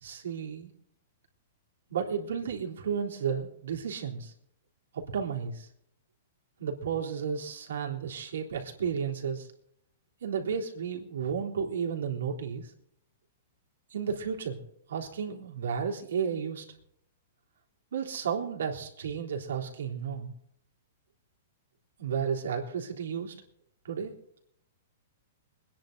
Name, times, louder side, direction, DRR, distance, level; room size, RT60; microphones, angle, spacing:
voice 1, 0.0-0.7 1.9-4.3 4.9-5.7 6.6-9.5 10.2-12.7 13.9-14.6 14.9-16.6 17.9-20.3 22.0-23.3 23.8-24.1, right 7 dB, 85° right, 0 dB, 3.5 m, -33 dB
22.0 x 10.0 x 4.0 m, 0.67 s
hypercardioid pair, 145°, 0 cm